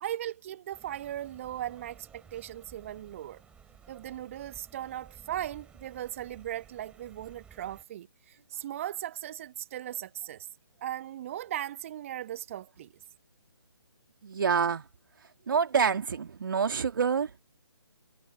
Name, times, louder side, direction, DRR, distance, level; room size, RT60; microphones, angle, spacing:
voice 1, 0.0-3.4 3.9-10.5 10.8-12.9, right 12 dB, 30° right, 1.1 m, -38 dB
sound 1, 0.7-7.8, right 7 dB, 10° right, 3.3 m, -55 dB
voice 2, 14.2-14.9 15.5-17.4, right 6 dB, 50° right, 2.5 m, -27 dB
figure-of-eight pair, 145°, 14 cm